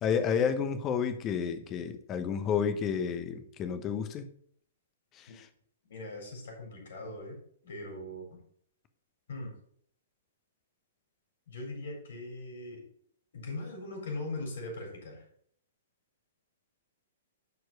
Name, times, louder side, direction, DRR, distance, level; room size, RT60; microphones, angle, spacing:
voice 1, 0.0-4.3 5.2-5.3, left 7 dB, 25° left, 9 dB, 1.0 m, -30 dB
voice 2, 5.8-7.4 7.6-8.4 9.3-9.5 11.5-12.9 13.3-15.2, left 2 dB, 55° left, 2 dB, 4.1 m, -40 dB
11.0 x 4.8 x 5.3 m, 0.66 s
figure-of-eight pair, 115°, 0 cm